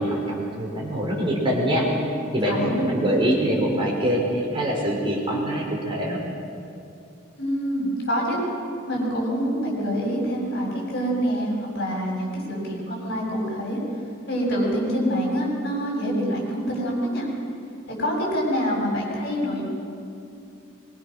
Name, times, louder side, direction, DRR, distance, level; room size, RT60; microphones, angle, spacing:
voice 1, 0.0-1.9 2.3-6.2, equal, 25° right, -3 dB, 5.0 m, -24 dB
voice 2, 7.4-8.4 8.9-13.8 14.3-17.3 18.0-19.7, equal, 55° left, -2 dB, 7.4 m, -26 dB
23.5 x 23.0 x 6.5 m, 2.6 s
head